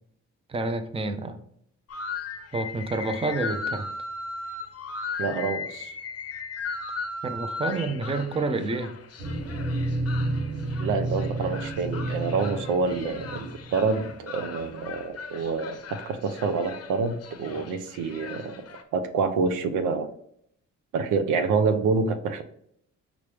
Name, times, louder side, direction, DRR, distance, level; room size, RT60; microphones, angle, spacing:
voice 1, 0.5-1.4 2.5-3.9 7.2-8.9, right 3 dB, 20° right, 8 dB, 0.5 m, -29 dB
sound 1, 1.9-18.8, left 4 dB, 55° left, 0.7 m, -37 dB
voice 2, 5.2-5.9 10.8-18.6 18.9-20.1 20.9-22.4, right 4 dB, 90° right, 9 dB, 0.6 m, -27 dB
sound 2, 9.2-14.0, right 1 dB, 60° right, 1.3 m, -30 dB
5.0 x 3.0 x 3.3 m, 0.68 s
cardioid pair, 90°, 30 cm